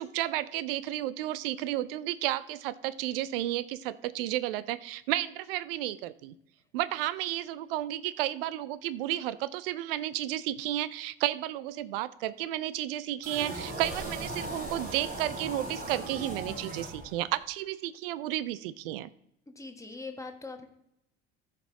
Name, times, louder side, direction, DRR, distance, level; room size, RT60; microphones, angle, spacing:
voice 1, 0.0-6.3 6.7-19.1, right 14 dB, 60° right, 17 dB, 0.6 m, -32 dB
sound 1, 13.2-17.4, right 1 dB, 30° right, 3.0 m, -38 dB
voice 2, 19.5-20.7, left 3 dB, 10° left, 5 dB, 1.4 m, -42 dB
14.5 x 5.3 x 3.6 m, 0.79 s
figure-of-eight pair, 65°, 32 cm